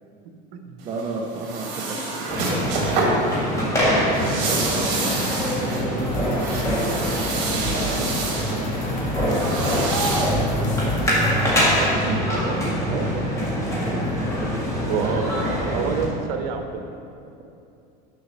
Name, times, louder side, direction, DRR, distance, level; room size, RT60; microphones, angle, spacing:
voice 1, 0.8-2.6 3.8-6.9 7.5-8.8 9.1-11.0 11.7-15.7, right 3 dB, 25° right, -1 dB, 0.6 m, -33 dB
sound 1, 0.8-11.6, right 3 dB, 65° right, 2.0 m, -29 dB
sound 2, 2.3-16.0, equal, 15° left, 1.8 m, -24 dB
sound 3, 6.0-11.3, right 1 dB, 65° left, 1.3 m, -34 dB
voice 2, 14.9-16.8, right 6 dB, 85° right, 5 dB, 0.9 m, -28 dB
6.5 x 5.3 x 6.5 m, 2.6 s
cardioid pair, 165°, 20 cm